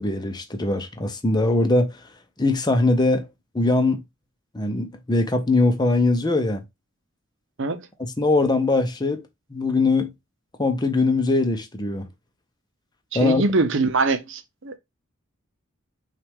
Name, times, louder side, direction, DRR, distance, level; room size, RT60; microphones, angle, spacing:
voice 1, 0.0-1.9 2.4-3.3 3.5-4.0 4.5-6.6 8.0-9.2 9.5-10.1 10.6-12.1 13.1-13.4, left 2 dB, 20° left, 0.7 m, -21 dB
voice 2, 13.1-14.8, right 3 dB, 60° right, 0.7 m, -23 dB
5.9 x 2.5 x 3.5 m
head